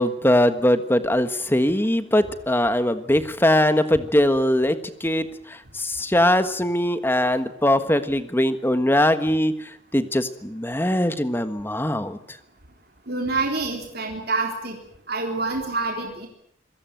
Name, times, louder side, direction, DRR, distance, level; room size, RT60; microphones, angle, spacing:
voice 1, 0.0-12.2, left 1 dB, 10° left, 10 dB, 1.4 m, -21 dB
voice 2, 13.1-14.8 15.1-16.3, right 3 dB, 50° right, 2 dB, 3.8 m, -27 dB
26.5 x 16.5 x 9.1 m, 0.71 s
head